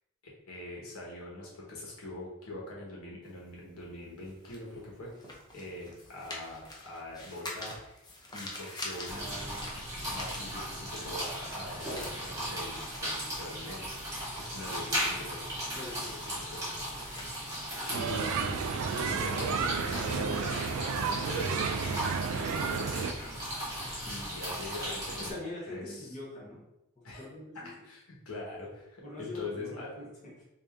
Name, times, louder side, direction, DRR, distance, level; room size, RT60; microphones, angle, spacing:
voice 1, 0.5-5.1 5.5-8.0 8.3-9.7 10.1-15.5 16.1-17.4 17.9-18.6 18.9-21.7 22.2-23.2 24.0-26.1 27.0-27.3 27.8-29.9, left 1 dB, 85° left, -4 dB, 1.2 m, -42 dB
sound 1, 3.2-11.0 11.3-21.4, left 2 dB, 20° left, 0.6 m, -47 dB
sound 2, 9.1-25.3, equal, 15° right, 1.3 m, -37 dB
voice 2, 15.7-16.1 25.2-26.6 27.2-27.7 29.0-30.4, left 2 dB, 35° left, -6 dB, 1.1 m, -43 dB
sound 3, 17.9-23.1, right 5 dB, 80° right, 0.3 m, -32 dB
3.3 x 2.7 x 3.5 m, 0.88 s
head